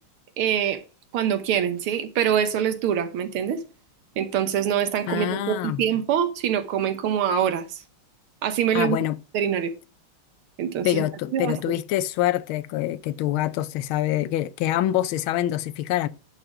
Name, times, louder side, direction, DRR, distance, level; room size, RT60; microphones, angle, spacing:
voice 1, 0.4-0.8 1.1-3.6 4.2-7.8 8.4-9.0 9.3-9.7 10.6-11.0 11.3-11.8, right 9 dB, 85° right, 1.9 m, -24 dB
voice 2, 5.1-5.8 8.7-9.2 10.8-16.1, left 13 dB, 80° left, 1.4 m, -25 dB
11.0 x 4.2 x 4.7 m
omnidirectional pair, 2.3 m